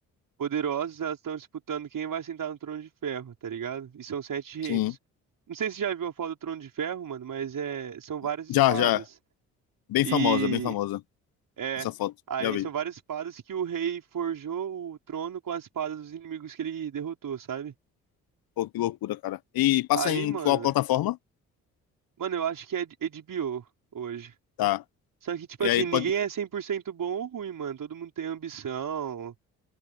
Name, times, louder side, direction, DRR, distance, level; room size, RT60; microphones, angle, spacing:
voice 1, 0.4-4.9 5.5-9.0 10.0-10.7 11.6-11.9 12.3-17.7 19.9-20.7 22.2-23.6 23.9-24.3 25.2-29.3, right 8 dB, 50° right, 5.3 m, -32 dB
voice 2, 8.5-9.0 9.9-11.0 12.0-12.1 12.4-12.7 18.6-21.2 24.6-24.8 25.6-26.0, left 15 dB, 60° left, 1.2 m, -25 dB
figure-of-eight pair, 45°, 42 cm